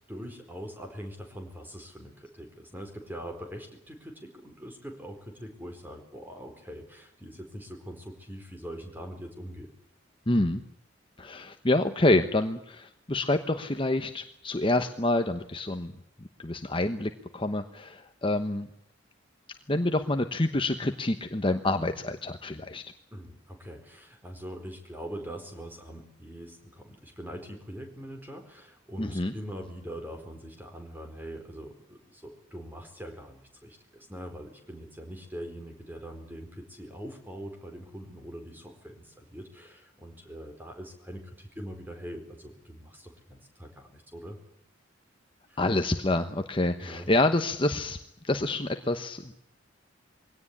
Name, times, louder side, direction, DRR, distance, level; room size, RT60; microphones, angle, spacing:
voice 1, 0.1-9.7 23.1-44.4 45.5-45.6 46.8-47.1, equal, 10° right, 4 dB, 4.4 m, -43 dB
voice 2, 10.3-10.6 11.2-15.9 16.4-18.7 19.5-22.8 29.0-29.3 45.6-48.0 48.2-49.3, left 2 dB, 25° left, 7 dB, 1.0 m, -27 dB
22.5 x 17.5 x 9.9 m, 0.75 s
head